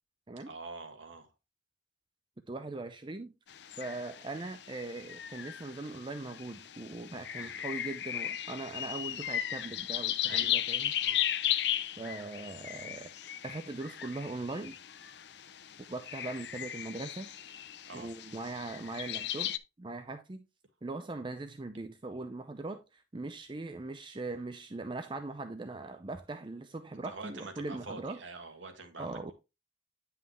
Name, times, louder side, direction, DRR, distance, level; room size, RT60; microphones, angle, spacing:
voice 1, 0.5-1.3 7.3-7.6 10.3-10.6 11.0-11.2 17.8-18.1 27.0-29.3, right 3 dB, 85° right, 1.8 m, -45 dB
voice 2, 2.5-3.3 3.8-10.9 12.0-13.1 13.4-14.8 15.9-17.3 17.9-19.5 19.8-20.4 20.8-28.2 29.0-29.3, right 2 dB, 25° right, 0.5 m, -40 dB
sound 1, 3.5-19.6, left 11 dB, 60° left, 0.5 m, -36 dB
9.6 x 5.6 x 3.0 m
head